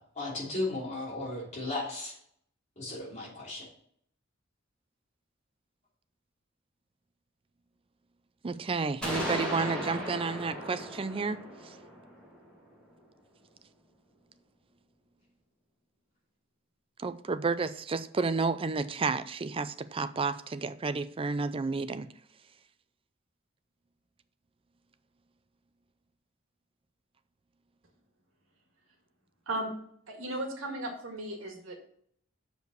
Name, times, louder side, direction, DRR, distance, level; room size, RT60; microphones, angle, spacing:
voice 1, 0.0-2.1 2.8-3.7, left 2 dB, 35° left, 3.0 m, -35 dB
voice 2, 8.4-11.7 17.0-22.1, right 4 dB, 25° right, 0.4 m, -31 dB
sound 1, 9.0-12.8, equal, 5° left, 3.0 m, -36 dB
voice 3, 30.1-31.7, right 1 dB, 75° right, 1.9 m, -35 dB
6.5 x 5.3 x 6.4 m
head